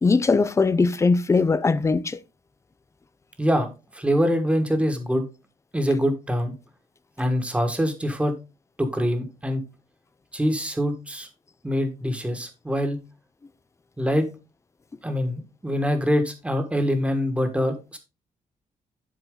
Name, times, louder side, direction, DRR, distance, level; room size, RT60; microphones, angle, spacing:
voice 1, 0.0-2.2, left 4 dB, 20° left, 0.5 m, -20 dB
voice 2, 3.4-3.7 3.9-5.2 5.7-6.5 7.2-8.3 8.8-9.6 10.3-11.3 11.6-13.0 14.0-14.3 15.0-18.0, equal, 10° right, 1.5 m, -24 dB
11.0 x 4.4 x 3.8 m
wide cardioid pair, 150°, 14 cm